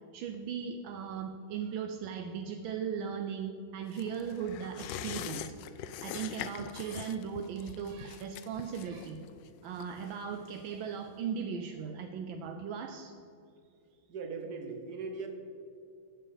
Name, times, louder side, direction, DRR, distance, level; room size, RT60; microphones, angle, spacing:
voice 1, 0.1-5.5 6.0-9.2 9.6-13.1, right 7 dB, 80° right, 6 dB, 1.4 m, -38 dB
sound 1, 3.9-11.0 11.3-11.4, left 9 dB, 75° left, 1.1 m, -44 dB
voice 2, 14.1-15.3, right 4 dB, 55° right, 5 dB, 1.7 m, -39 dB
13.5 x 7.8 x 4.9 m, 2.5 s
omnidirectional pair, 2.2 m